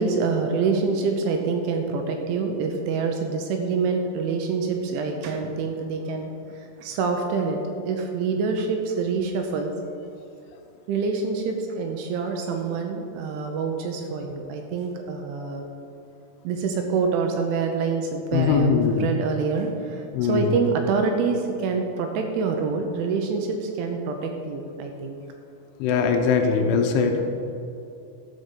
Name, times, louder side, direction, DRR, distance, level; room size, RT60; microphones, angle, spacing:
voice 1, 0.0-9.7 10.9-15.7 16.4-25.2, right 4 dB, 80° right, 4 dB, 3.1 m, -26 dB
voice 2, 18.3-19.1 20.1-20.6 25.8-27.2, left 5 dB, 80° left, 4 dB, 3.1 m, -21 dB
13.0 x 5.8 x 6.7 m, 2.7 s
omnidirectional pair, 5.8 m